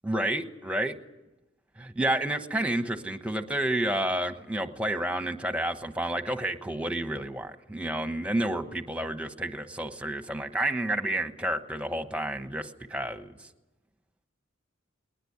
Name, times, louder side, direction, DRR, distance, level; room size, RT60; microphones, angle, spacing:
voice 1, 0.0-0.9 1.8-13.3, right 1 dB, 5° right, 8 dB, 1.1 m, -30 dB
20.5 x 19.5 x 9.7 m, 0.99 s
head